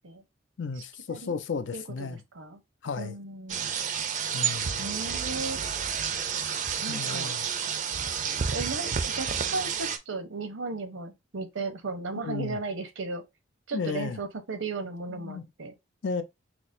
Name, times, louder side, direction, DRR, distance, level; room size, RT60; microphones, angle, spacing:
voice 1, 0.6-2.2 2.8-3.2 4.3-4.9 6.9-7.5 12.2-12.6 13.7-14.2 15.1-15.4 16.0-16.2, left 5 dB, 70° left, 0.5 m, -34 dB
voice 2, 1.7-2.1 2.3-2.6 3.0-3.6 4.8-5.6 6.8-7.3 8.5-13.2 13.7-15.7, right 3 dB, 85° right, 0.8 m, -35 dB
sound 1, 3.5-10.0, right 7 dB, 40° right, 0.4 m, -30 dB
6.0 x 2.0 x 2.5 m
head